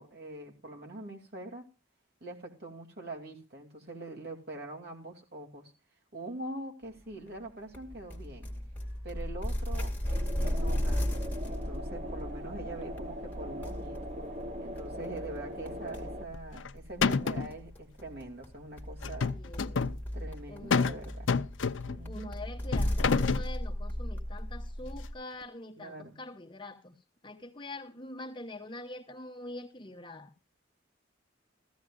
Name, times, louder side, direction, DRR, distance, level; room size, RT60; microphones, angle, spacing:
voice 1, 0.0-1.7 2.2-5.7 6.1-8.5 9.0-11.1 11.4-14.1 14.6-19.4 20.1-21.3 21.9-22.3 25.8-26.2, right 2 dB, 55° right, 2.7 m, -43 dB
sound 1, 7.7-25.1, equal, 10° left, 2.2 m, -36 dB
sound 2, 10.0-16.3, equal, 35° right, 0.9 m, -41 dB
sound 3, 16.3-16.7 17.0-17.5 19.0-20.0 20.7-21.0 21.3-22.0 22.7-23.5, left 5 dB, 90° left, 0.6 m, -28 dB
voice 2, 19.3-20.0 20.5-21.0 22.1-26.9 27.2-30.3, left 2 dB, 25° left, 1.1 m, -44 dB
15.5 x 15.0 x 2.4 m
head